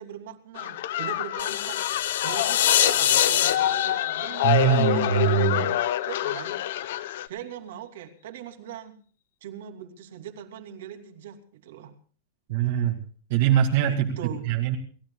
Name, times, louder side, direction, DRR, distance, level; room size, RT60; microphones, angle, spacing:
voice 1, 0.0-1.8 2.2-5.6 6.1-6.6 7.3-9.0 9.4-11.9 13.8-14.5, right 9 dB, 65° right, 5 dB, 2.8 m, -41 dB
sound 1, 0.6-7.3, left 13 dB, 60° left, 0.9 m, -27 dB
sound 2, 1.4-5.5, left 11 dB, 80° left, 1.2 m, -24 dB
voice 2, 4.4-5.7 12.5-13.0 13.3-14.2 14.4-14.8, right 11 dB, 50° right, 1 dB, 2.2 m, -22 dB
29.5 x 15.5 x 2.4 m, 0.41 s
supercardioid pair, 175°, 0 cm